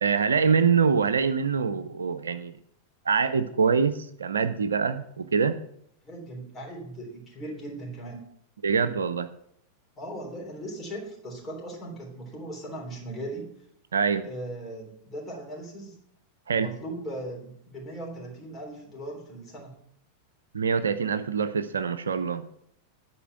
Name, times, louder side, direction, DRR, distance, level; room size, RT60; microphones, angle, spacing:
voice 1, 0.0-2.5 3.1-5.6 8.6-9.3 13.9-14.3 16.5-16.7 20.5-22.4, right 6 dB, 70° right, 11 dB, 0.5 m, -24 dB
voice 2, 6.0-8.2 10.0-13.5 14.2-16.0 16.6-19.7, right 1 dB, 20° left, -2 dB, 3.5 m, -38 dB
10.0 x 4.4 x 7.7 m, 0.68 s
figure-of-eight pair, 90°, 0 cm